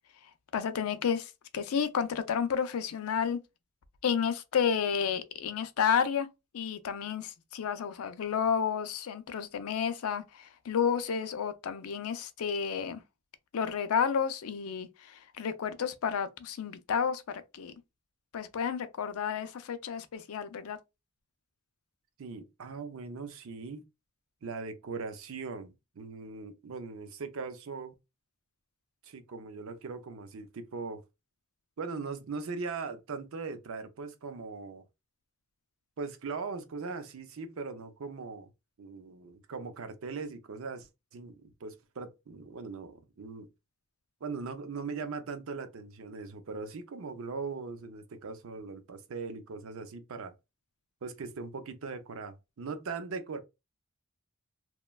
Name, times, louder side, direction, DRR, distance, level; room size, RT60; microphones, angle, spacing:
voice 1, 0.5-3.4 4.0-6.3 6.5-13.0 13.5-17.7 18.3-20.8, left 7 dB, 80° left, 0.4 m, -31 dB
voice 2, 22.2-23.8 24.4-27.9 29.0-31.0 31.8-34.8 36.0-38.5 38.8-43.5 44.2-50.3 51.0-53.4, right 4 dB, 70° right, 0.5 m, -40 dB
3.0 x 2.2 x 2.2 m
head